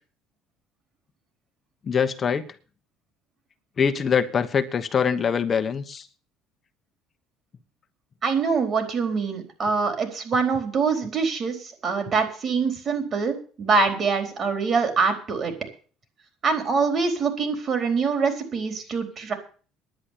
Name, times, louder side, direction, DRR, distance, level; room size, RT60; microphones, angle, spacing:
voice 1, 1.9-2.5 3.8-6.1, left 6 dB, 40° left, 9 dB, 1.2 m, -23 dB
voice 2, 8.2-15.5 16.4-19.3, right 5 dB, 45° right, 6 dB, 4.2 m, -24 dB
10.5 x 8.9 x 8.5 m, 0.40 s
supercardioid pair, 90°, 0 cm